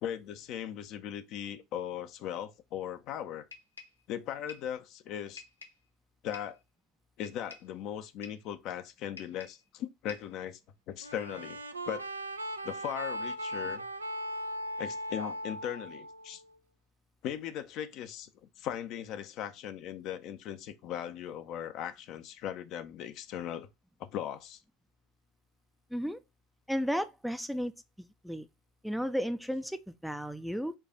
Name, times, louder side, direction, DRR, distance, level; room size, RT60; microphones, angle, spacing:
voice 1, 0.0-3.4 4.1-5.4 6.2-6.6 7.2-10.6 10.9-11.6 11.9-12.1 12.6-13.9 14.8-16.4 17.2-18.3 18.6-23.7 24.0-24.6, left 10 dB, 50° left, 0.6 m, -38 dB
sound 1, 3.5-4.0 4.5-4.7 5.4-5.8 6.3-6.6 7.2-7.7 8.2-8.5 9.2-9.7 10.1-10.4, left 5 dB, 90° left, 0.7 m, -49 dB
sound 2, 11.0-16.5, equal, 85° right, 0.4 m, -38 dB
voice 2, 25.9-26.2 26.7-27.7 28.2-28.5 28.8-30.7, equal, ahead, 0.4 m, -33 dB
4.6 x 2.4 x 4.3 m
figure-of-eight pair, 70°, 0 cm